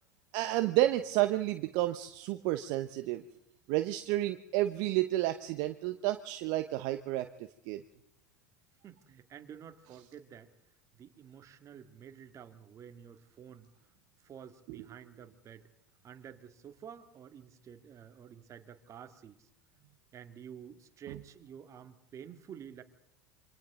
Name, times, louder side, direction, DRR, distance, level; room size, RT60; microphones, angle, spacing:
voice 1, 0.3-3.2 3.7-7.3 7.7-7.8 14.7-14.8, right 15 dB, 55° right, 9 dB, 1.0 m, -30 dB
voice 2, 8.8-10.5 10.9-13.7 14.2-15.7 16.0-19.5 20.1-22.8, right 8 dB, 35° right, 8 dB, 2.3 m, -50 dB
27.0 x 25.0 x 3.9 m, 0.81 s
hypercardioid pair, 80°, 9 cm